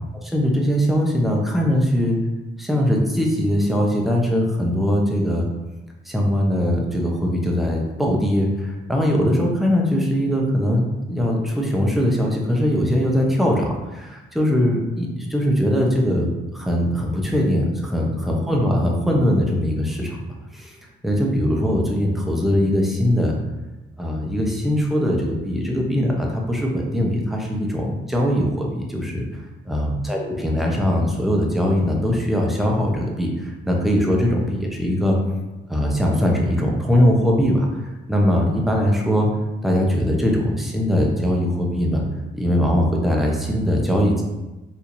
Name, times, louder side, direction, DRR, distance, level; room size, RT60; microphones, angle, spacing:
voice 1, 0.2-2.2 2.6-5.5 6.1-13.6 13.9-20.2 20.5-20.8 21.0-23.4 24.0-29.3 29.7-35.2 35.7-37.8 38.1-39.3 39.6-42.0 42.3-44.2, equal, ahead, -1 dB, 0.8 m, -21 dB
4.4 x 2.7 x 2.6 m, 1.1 s
cardioid pair, 90°, 20 cm